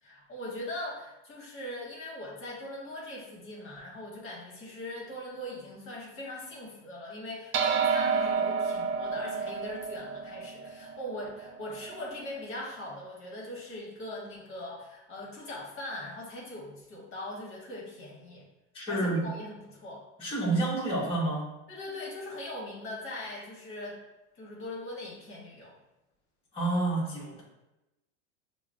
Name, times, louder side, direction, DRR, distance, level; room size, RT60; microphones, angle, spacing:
voice 1, 0.0-18.5 18.9-20.0 21.7-24.0 24.3-25.7, left 1 dB, 35° left, -3 dB, 1.1 m, -41 dB
sound 1, 7.5-12.2, right 5 dB, 65° right, 0.6 m, -30 dB
voice 2, 18.7-19.3 20.2-21.4 26.5-27.4, right 2 dB, 15° left, -7 dB, 1.0 m, -29 dB
5.6 x 2.0 x 2.5 m, 0.98 s
supercardioid pair, 110°, 37 cm